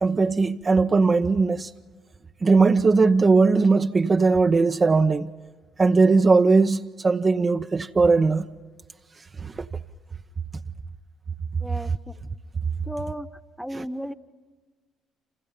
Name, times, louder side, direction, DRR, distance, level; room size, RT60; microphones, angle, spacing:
voice 1, 0.0-1.7 2.4-5.3 5.8-8.5 9.4-9.6 13.7-13.9, right 4 dB, 35° right, 0.9 m, -19 dB
voice 2, 11.6-12.1 12.9-13.3 13.6-14.1, equal, ahead, 1.3 m, -34 dB
29.5 x 28.0 x 5.5 m
hypercardioid pair, 50°, 0 cm